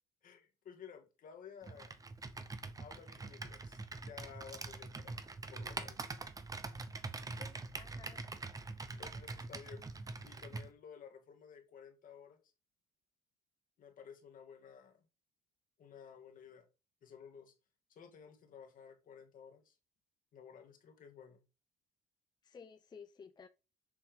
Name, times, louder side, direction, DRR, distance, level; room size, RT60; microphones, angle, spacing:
voice 1, 0.2-2.0 2.8-5.2 5.5-6.0 8.9-9.9 10.2-12.4 13.8-15.1 15.8-16.7 17.0-17.5 17.9-19.8 20.3-21.4, left 7 dB, 55° left, 2.0 m, -54 dB
Computer keyboard, 1.6-10.7, right 3 dB, 20° right, 1.0 m, -44 dB
voice 2, 7.4-8.3 22.4-23.5, left 5 dB, 25° left, 0.5 m, -55 dB
7.1 x 5.7 x 5.1 m
cardioid pair, 110°, 17 cm